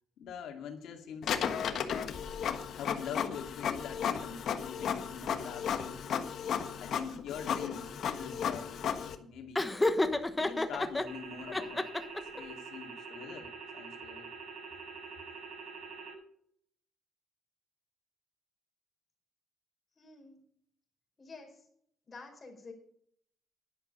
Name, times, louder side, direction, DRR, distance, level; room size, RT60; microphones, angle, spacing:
voice 1, 0.2-1.7 2.7-6.0 6.8-8.8 9.2-9.7 10.3-11.8 12.3-14.3, left 7 dB, 90° left, 3 dB, 2.4 m, -44 dB
Printer, 1.2-9.1, left 7 dB, 65° left, 1.3 m, -34 dB
Laughter, 9.6-11.1 11.5-12.4, left 2 dB, 10° left, 1.0 m, -30 dB
sound 1, 11.1-16.1, right 5 dB, 85° right, 6.9 m, -45 dB
voice 2, 20.0-20.4 21.2-21.6 22.1-22.7, left 3 dB, 30° left, 2 dB, 4.8 m, -49 dB
11.5 x 11.0 x 5.6 m, 0.66 s
cardioid pair, 140°, 0 cm